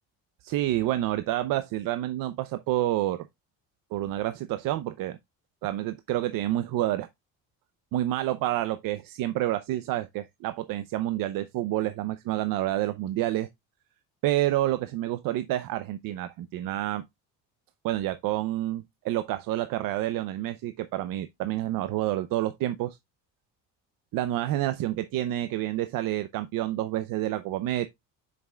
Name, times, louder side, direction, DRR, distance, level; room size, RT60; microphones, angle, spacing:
voice 1, 0.4-3.3 3.9-5.2 5.6-7.1 7.9-13.5 14.2-17.0 17.8-23.0 24.1-27.9, right 14 dB, 70° right, 0.7 m, -28 dB
7.5 x 6.0 x 2.3 m
cardioid pair, 160°, 35 cm